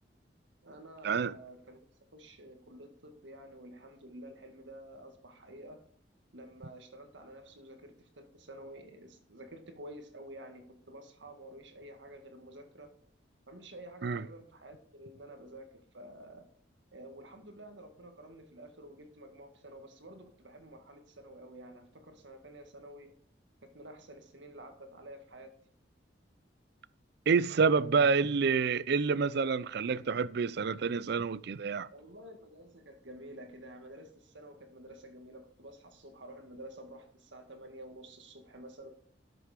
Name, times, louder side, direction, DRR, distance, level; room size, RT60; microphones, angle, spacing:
voice 1, 0.6-1.9 2.1-5.8 6.3-12.9 13.5-16.5 16.9-23.1 23.7-25.5 31.9-38.9, right 1 dB, 90° right, 1.8 m, -50 dB
voice 2, 27.3-31.9, right 5 dB, 65° right, 0.4 m, -28 dB
12.0 x 6.9 x 4.9 m
head